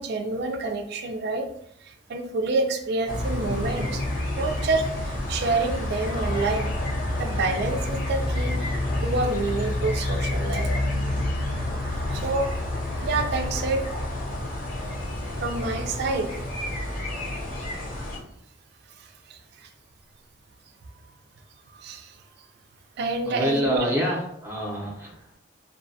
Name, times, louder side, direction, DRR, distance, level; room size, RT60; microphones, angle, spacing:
voice 1, 0.0-1.5 1.8-4.0 4.3-6.7 7.2-10.7 12.1-12.5 13.0-13.8 15.4-16.3 19.0-19.7 21.7-22.2 23.0-23.8, right 3 dB, 55° right, 5 dB, 0.3 m, -28 dB
sound 1, 3.1-18.2, left 1 dB, 50° left, 0.6 m, -29 dB
voice 2, 23.3-25.4, equal, 10° right, -3 dB, 0.6 m, -27 dB
2.6 x 2.2 x 2.6 m, 0.74 s
head